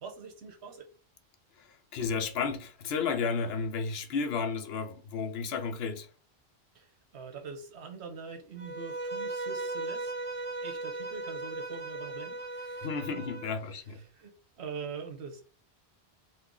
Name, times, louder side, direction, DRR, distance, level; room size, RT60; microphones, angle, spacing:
voice 1, 0.0-0.9 6.7-10.1 10.6-13.3 13.7-15.4, right 5 dB, 85° right, 1.1 m, -44 dB
voice 2, 1.9-6.1 12.8-14.0, left 5 dB, 70° left, 0.8 m, -32 dB
Bowed string instrument, 8.6-13.6, right 2 dB, 50° right, 0.4 m, -37 dB
2.7 x 2.5 x 3.7 m
omnidirectional pair, 1.1 m